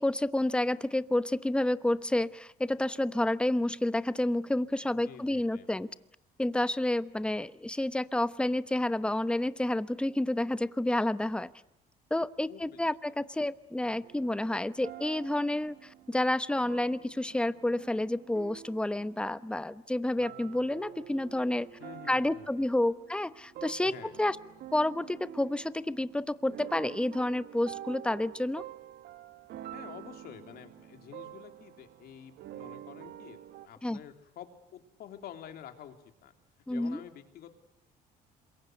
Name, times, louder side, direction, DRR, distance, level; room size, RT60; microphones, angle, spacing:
voice 1, 0.0-5.9 6.4-11.5 12.1-15.8 16.1-21.7 22.1-24.4 24.7-28.6 33.8-34.0 36.7-37.0, left 1 dB, 5° left, 14 dB, 0.9 m, -29 dB
voice 2, 5.0-5.7 12.5-12.8 21.8-22.7 23.9-24.2 29.7-35.9 36.2-36.3 36.7-37.5, left 10 dB, 65° left, 6 dB, 3.4 m, -49 dB
sound 1, 14.0-19.8 20.2-33.7, right 12 dB, 70° right, 1.3 m, -48 dB
27.0 x 22.5 x 8.0 m, 0.80 s
cardioid pair, 110°, 17 cm